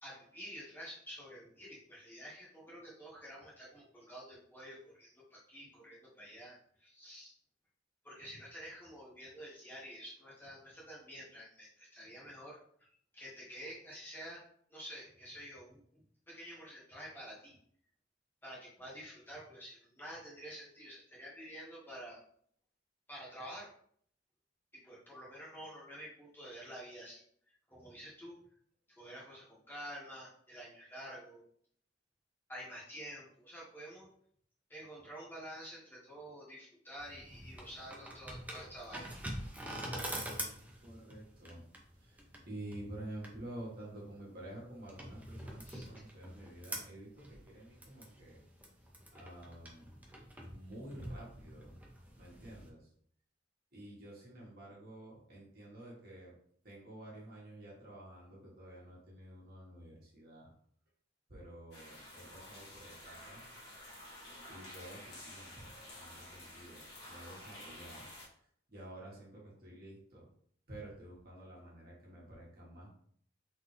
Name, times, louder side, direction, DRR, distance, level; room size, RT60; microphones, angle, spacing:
voice 1, 0.0-7.3 8.0-12.9 13.1-14.4 14.7-17.6 18.4-22.2 23.1-23.7 24.7-27.2 27.7-28.4 28.9-31.4 32.5-34.1 34.7-39.1 45.6-45.9, equal, 10° left, -6 dB, 1.4 m, -49 dB
sound 1, 37.0-52.7, right 1 dB, 10° right, 0.7 m, -46 dB
voice 2, 40.8-41.6 41.9-48.4 49.1-50.0 50.5-51.8 52.2-52.9 53.7-56.3 56.6-60.5 61.3-63.6 64.5-66.8 67.1-68.1 68.7-70.3 70.7-73.0, right 1 dB, 55° right, -4 dB, 1.6 m, -50 dB
sound 2, 61.7-68.3, left 1 dB, 60° left, 1.7 m, -51 dB
3.9 x 3.4 x 3.2 m, 0.62 s
head